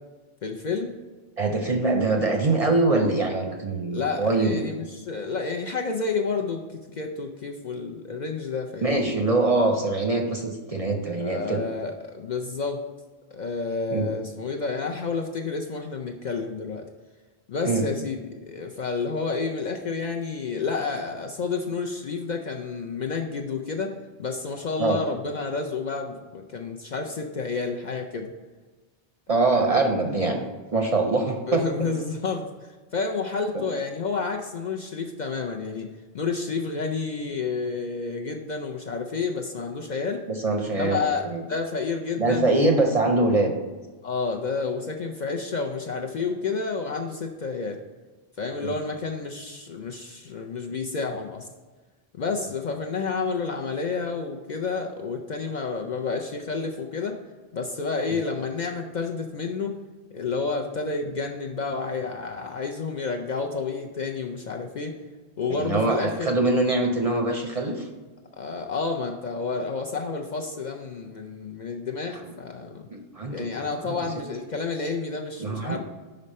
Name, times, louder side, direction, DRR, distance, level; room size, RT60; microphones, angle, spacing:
voice 1, 0.4-0.9 3.9-9.1 11.1-12.8 13.3-16.8 17.5-28.3 29.5-30.4 31.5-32.5 32.9-35.9 36.1-40.2 40.8-42.7 44.0-47.8 48.4-51.5 52.2-57.2 57.5-59.8 60.1-65.0 65.4-66.4 68.4-72.9 73.3-75.8, left 4 dB, 55° left, 3 dB, 0.5 m, -30 dB
voice 2, 1.4-4.6 8.8-11.6 13.9-14.1 17.6-17.9 24.8-25.0 29.3-30.4 30.7-31.7 33.5-33.6 40.3-41.4 42.2-43.5 48.6-48.8 58.1-58.2 65.5-67.9 72.1-72.3 72.9-73.9 75.4-75.8, right 2 dB, 45° right, 3 dB, 0.5 m, -24 dB
5.5 x 5.1 x 4.1 m, 1.3 s
omnidirectional pair, 1.1 m